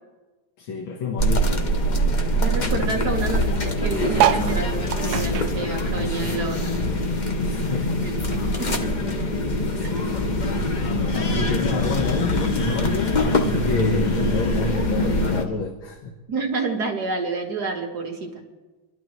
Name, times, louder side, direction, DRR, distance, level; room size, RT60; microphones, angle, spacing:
voice 1, 0.6-1.8 7.4-8.2 11.1-16.2, left 4 dB, 75° left, 2.0 m, -29 dB
sound 1, 1.2-15.4, left 1 dB, 45° left, 0.6 m, -23 dB
voice 2, 2.3-6.6 8.0-8.2 8.6-9.1 9.8-9.9 16.3-18.4, right 4 dB, 55° right, 1.9 m, -29 dB
sound 2, 4.1-6.9 7.2-8.8 9.2-9.3 9.5-9.6 9.8-10.2 11.0-11.1, right 10 dB, 75° right, 0.9 m, -26 dB
30.0 x 12.0 x 3.1 m
omnidirectional pair, 2.3 m